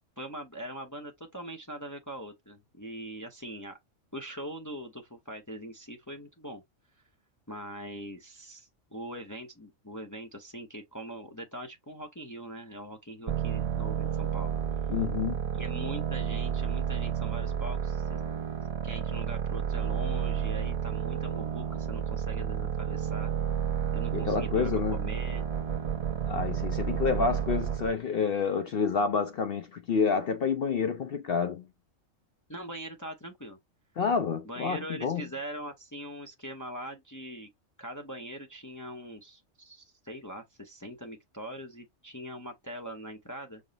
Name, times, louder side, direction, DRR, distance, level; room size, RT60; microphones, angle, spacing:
voice 1, 0.2-3.8 4.1-6.6 7.5-14.5 15.5-18.2 18.8-23.3 23.9-25.5 32.5-33.6 34.4-37.5 37.8-43.6, right 1 dB, 20° left, 0.6 m, -42 dB
sound 1, 13.3-28.0, right 8 dB, 35° right, 0.7 m, -31 dB
voice 2, 14.9-15.4 24.1-25.0 26.2-31.6 34.0-35.2, left 5 dB, 60° left, 0.7 m, -28 dB
5.4 x 2.0 x 3.9 m
omnidirectional pair, 1.4 m